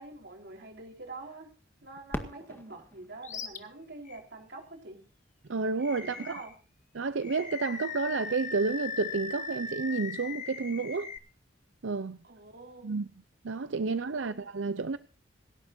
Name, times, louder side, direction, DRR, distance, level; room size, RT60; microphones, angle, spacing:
voice 1, 0.0-1.6 1.8-5.0 6.0-6.5 12.2-12.9 14.1-14.4, right 2 dB, 60° right, 4.3 m, -46 dB
Fireworks, 2.1-4.8 5.5-5.6 6.3-6.8 8.7-8.8, equal, 10° left, 1.9 m, -43 dB
Animal, 3.2-3.6 4.1-4.2 5.8-6.6 7.2-11.2, left 5 dB, 40° left, 1.4 m, -39 dB
voice 2, 5.5-6.4 6.9-11.1 11.8-12.2 12.8-13.1 13.4-15.0, right 4 dB, 85° right, 0.6 m, -30 dB
27.0 x 12.0 x 2.7 m
head